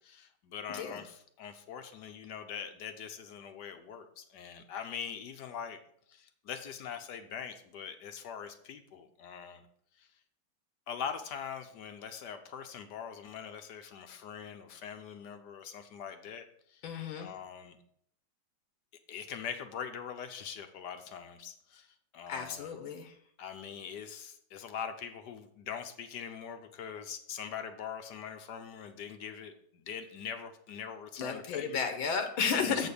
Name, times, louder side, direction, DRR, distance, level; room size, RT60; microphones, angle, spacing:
voice 1, 0.0-5.8 6.1-9.6 10.0-10.1 10.9-16.5 16.7-16.8 17.1-17.8 19.1-21.9 22.1-22.7 23.4-31.9 32.5-32.9, left 7 dB, 65° left, 8 dB, 1.3 m, -42 dB
voice 2, 0.7-1.0 16.8-17.3 22.3-23.2 31.2-32.9, left 6 dB, 85° left, 6 dB, 1.7 m, -33 dB
7.8 x 4.2 x 6.8 m, 0.65 s
omnidirectional pair, 2.1 m